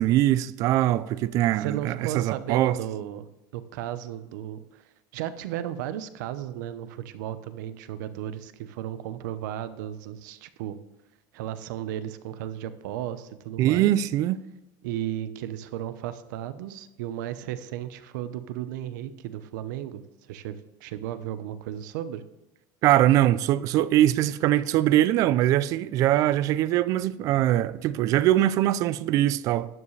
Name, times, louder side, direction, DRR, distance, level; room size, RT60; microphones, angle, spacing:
voice 1, 0.0-2.8 13.6-14.4 22.8-29.7, right 13 dB, 35° right, 0.4 m, -22 dB
voice 2, 1.5-3.3 3.5-4.8 5.1-10.8 11.3-13.9 14.8-20.0 20.3-22.2, right 11 dB, 85° right, 0.9 m, -34 dB
12.0 x 9.8 x 3.3 m
cardioid pair, 180°, 10 cm